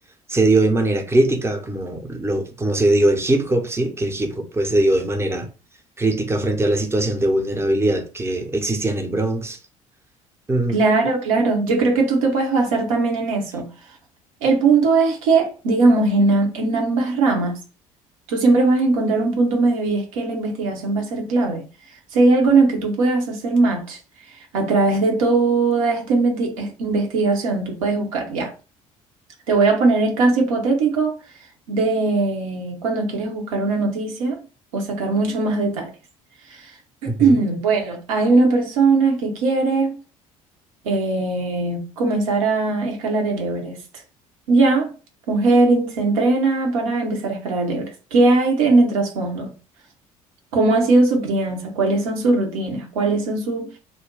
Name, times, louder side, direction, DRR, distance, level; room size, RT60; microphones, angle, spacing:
voice 1, 0.3-5.5 6.0-9.6 10.5-10.8 37.0-37.4, right 2 dB, 15° right, 0.7 m, -21 dB
voice 2, 10.7-13.7 14.4-17.6 18.3-21.6 22.1-24.0 24.5-28.5 29.5-31.1 31.7-34.4 34.7-35.9 36.5-36.6 37.0-40.0 40.8-43.8 44.5-44.9 45.3-49.5 50.5-53.7, right 3 dB, 70° right, 0.9 m, -19 dB
2.6 x 2.1 x 3.7 m
figure-of-eight pair, 55°, 18 cm